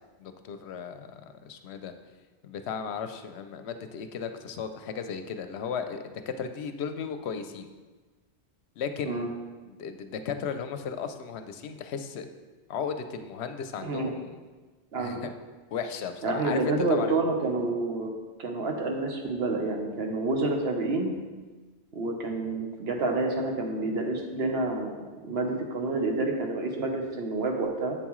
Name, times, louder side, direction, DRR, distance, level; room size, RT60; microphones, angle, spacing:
voice 1, 0.2-1.9 2.4-7.7 8.8-9.3 9.6-12.3 12.7-14.4 15.0-15.3 15.7-16.6 16.9-17.2, left 6 dB, 80° left, 8 dB, 0.8 m, -35 dB
voice 2, 14.9-15.2 16.2-18.1 18.4-21.1 21.9-28.0, right 2 dB, 65° right, 2 dB, 1.2 m, -28 dB
8.1 x 7.2 x 3.1 m, 1.3 s
omnidirectional pair, 1.1 m